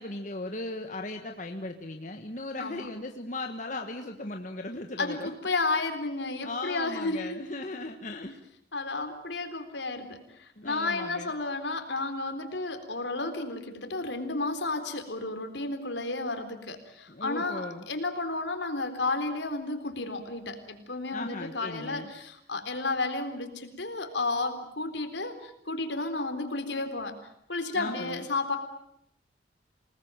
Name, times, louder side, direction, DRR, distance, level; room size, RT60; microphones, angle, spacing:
voice 1, 0.0-5.3 6.4-8.4 10.6-11.3 17.1-17.8 21.1-22.1 27.7-28.2, left 2 dB, 40° left, 4 dB, 1.6 m, -37 dB
voice 2, 5.0-7.4 8.7-27.1 27.5-28.6, left 3 dB, 70° left, 7 dB, 3.8 m, -32 dB
27.5 x 19.5 x 9.0 m, 0.76 s
head